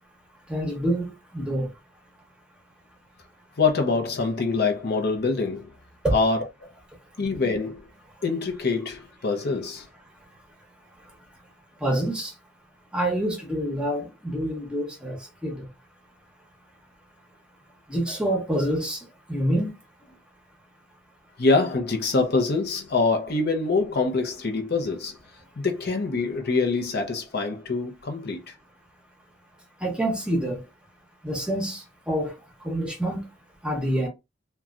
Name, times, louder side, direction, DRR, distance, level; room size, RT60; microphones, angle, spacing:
voice 1, 0.5-1.7 6.0-6.2 11.0-11.1 11.8-12.3 12.9-15.7 17.9-19.7 20.1-20.2 29.8-30.7 31.2-33.3 33.6-34.1, right 1 dB, 5° right, 0.8 m, -27 dB
voice 2, 3.6-5.7 6.1-6.7 7.2-7.8 8.2-9.9 21.4-25.2 25.6-28.5, left 3 dB, 55° left, 0.7 m, -25 dB
3.0 x 2.3 x 2.5 m
head